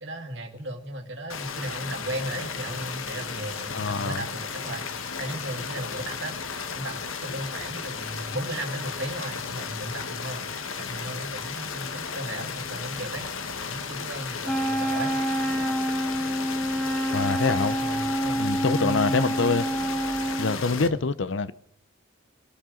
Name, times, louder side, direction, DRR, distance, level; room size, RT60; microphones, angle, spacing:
voice 1, 0.0-4.8 5.2-6.4 6.7-10.5 10.8-13.3 13.6-15.1 17.8-19.4 20.9-21.0, right 1 dB, 60° right, 2.0 m, -35 dB
sound 1, 1.3-20.9, left 5 dB, 85° left, 1.3 m, -34 dB
voice 2, 3.7-4.2 17.1-17.8 18.4-19.7 20.4-21.5, left 4 dB, 70° left, 0.7 m, -25 dB
Wind instrument woodwind instrument, 14.4-20.6, right 1 dB, 5° left, 1.4 m, -27 dB
24.0 x 12.5 x 3.9 m
head